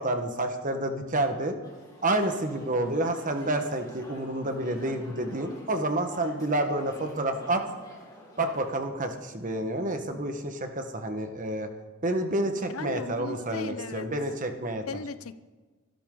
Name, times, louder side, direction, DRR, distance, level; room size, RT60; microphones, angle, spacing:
voice 1, 0.0-1.6 2.0-7.6 8.4-11.7 12.0-14.8, right 1 dB, 40° right, 6 dB, 1.5 m, -29 dB
sound 1, 1.6-8.7, left 1 dB, 20° left, 3.4 m, -49 dB
voice 2, 12.6-14.1 14.9-15.3, left 4 dB, 80° left, 14 dB, 0.7 m, -37 dB
24.0 x 12.5 x 3.9 m, 1.3 s
head